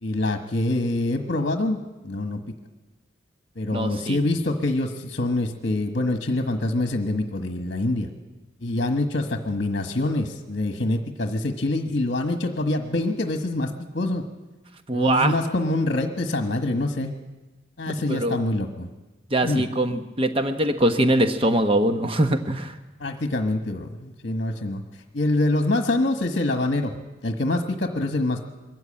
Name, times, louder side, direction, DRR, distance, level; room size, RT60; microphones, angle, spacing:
voice 1, 0.0-1.8 2.0-2.4 3.6-8.1 8.6-14.2 14.9-17.1 17.8-18.9 19.4-19.7 23.0-24.8 25.1-26.9 27.2-28.4, left 2 dB, 55° left, 5 dB, 1.3 m, -25 dB
voice 2, 3.7-4.2 14.9-15.3 18.1-18.4 19.3-22.7, right 1 dB, 30° right, 7 dB, 1.0 m, -22 dB
22.5 x 14.0 x 8.8 m, 1.1 s
head